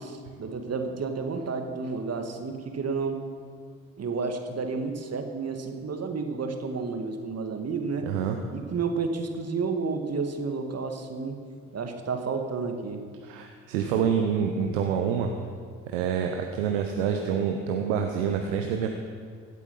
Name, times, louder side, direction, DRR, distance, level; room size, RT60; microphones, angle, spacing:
voice 1, 0.0-3.2 4.0-8.1 8.5-11.4 11.7-13.0, right 4 dB, 40° right, 5 dB, 1.8 m, -31 dB
voice 2, 8.0-8.4 13.2-15.3 15.9-18.9, right 7 dB, 80° right, 4 dB, 0.9 m, -27 dB
16.5 x 8.4 x 5.5 m, 2.1 s
hypercardioid pair, 50°, 38 cm